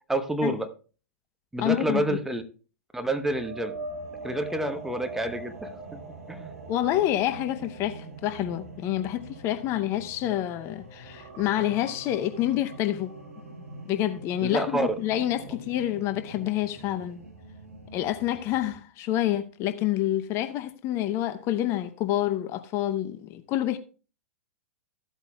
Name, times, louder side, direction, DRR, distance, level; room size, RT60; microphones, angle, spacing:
voice 1, 0.1-0.7 1.5-2.4 2.9-3.8 4.2-6.0 6.3-6.5 14.4-14.9, right 1 dB, 5° right, 1.0 m, -28 dB
voice 2, 1.6-2.0 6.7-13.2 13.9-17.2 17.9-23.8, left 13 dB, 35° left, 0.7 m, -28 dB
sound 1, 3.2-10.6 10.9-14.8 15.2-15.4 18.7-18.8, right 1 dB, 35° right, 1.7 m, -44 dB
sound 2, 3.7-18.7, right 2 dB, 75° right, 3.2 m, -45 dB
15.0 x 8.2 x 2.2 m
figure-of-eight pair, 105°, 8 cm